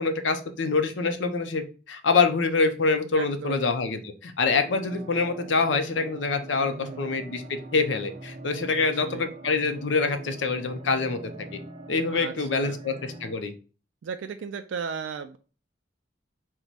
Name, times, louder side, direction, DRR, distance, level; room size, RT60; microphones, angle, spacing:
voice 1, 0.0-11.2 11.9-13.5, left 4 dB, 75° left, 8 dB, 0.6 m, -25 dB
voice 2, 3.1-3.6 6.6-7.0 8.8-9.3 12.1-12.8 14.0-15.4, right 6 dB, 75° right, 8 dB, 0.3 m, -36 dB
sound 1, 4.5-13.3, right 2 dB, 40° right, 0.8 m, -43 dB
4.6 x 2.2 x 4.0 m, 0.35 s
head